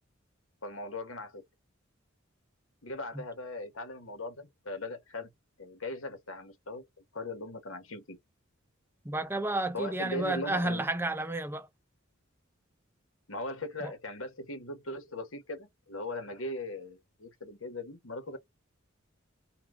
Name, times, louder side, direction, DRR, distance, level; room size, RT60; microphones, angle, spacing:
voice 1, 0.6-1.4 2.8-5.3 5.6-6.8 7.1-8.2 9.7-10.8 13.3-18.4, left 2 dB, 80° left, 1.4 m, -39 dB
voice 2, 9.1-11.7 13.8-13.9, right 2 dB, 10° right, 0.5 m, -31 dB
5.6 x 2.4 x 3.9 m
head